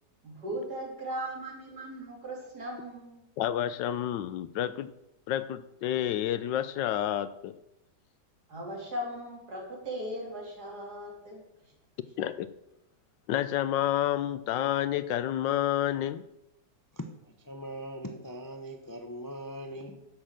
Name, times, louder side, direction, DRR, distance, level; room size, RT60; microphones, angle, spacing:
voice 1, 0.2-3.2 8.5-11.5, equal, 60° right, -1 dB, 3.6 m, -38 dB
voice 2, 3.4-4.9 5.3-7.5 12.2-12.5 13.3-16.2, left 11 dB, 90° left, 14 dB, 1.4 m, -29 dB
voice 3, 16.9-20.1, equal, 25° left, 5 dB, 0.4 m, -41 dB
10.5 x 6.6 x 7.5 m, 0.86 s
omnidirectional pair, 1.9 m